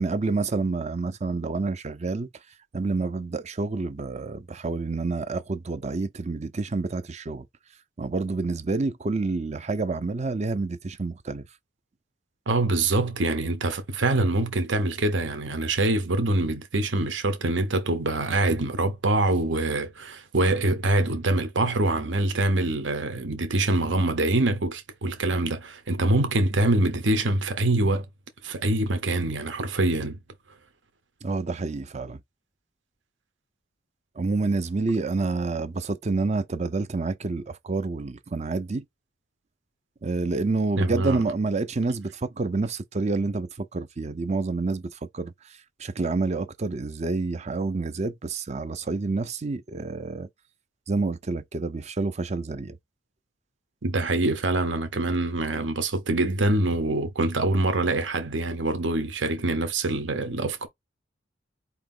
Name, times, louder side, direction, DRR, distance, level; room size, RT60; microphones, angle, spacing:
voice 1, 0.0-2.3 2.7-7.5 8.0-11.5 31.2-32.2 34.2-38.8 40.0-45.3 45.8-50.3 50.9-52.8, right 3 dB, 35° right, 0.5 m, -28 dB
voice 2, 12.5-28.1 28.4-30.2 40.8-41.2 53.8-60.7, right 2 dB, 70° right, 0.9 m, -24 dB
4.7 x 2.9 x 3.7 m
head